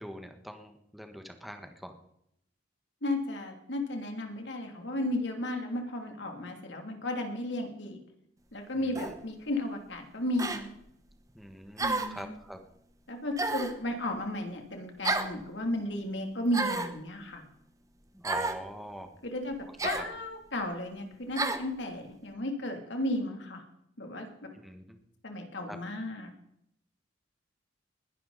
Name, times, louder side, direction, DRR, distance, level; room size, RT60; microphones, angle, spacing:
voice 1, 0.0-2.0 11.3-12.6 18.1-19.1 19.8-19.9 24.5-25.0 25.7-25.8, equal, ahead, 5 dB, 1.4 m, -43 dB
voice 2, 3.0-8.0 8.5-10.7 11.8-12.3 13.1-17.4 19.2-19.6 19.8-23.6 24.0-24.5 25.2-26.3, left 1 dB, 75° left, 4 dB, 2.9 m, -34 dB
sound 1, 9.0-9.2 10.4-10.6 11.8-12.2 13.4-13.8 15.0-15.4 16.5-17.0 18.2-18.6 19.8-20.1 21.4-21.7, right 3 dB, 20° right, 1.1 m, -31 dB
21.0 x 11.5 x 4.1 m, 0.76 s
head